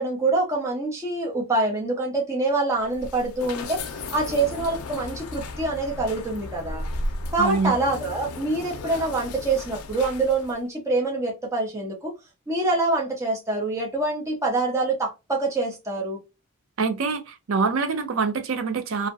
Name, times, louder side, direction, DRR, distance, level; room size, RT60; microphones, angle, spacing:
voice 1, 0.0-3.8 4.1-6.8 7.3-12.1 12.5-16.2, right 2 dB, 15° right, 0.7 m, -25 dB
sound 1, 2.8-10.6, left 2 dB, 85° left, 0.5 m, -35 dB
voice 2, 7.4-7.7 16.8-17.2 17.5-19.1, right 4 dB, 65° right, 0.5 m, -24 dB
2.6 x 2.1 x 2.4 m
head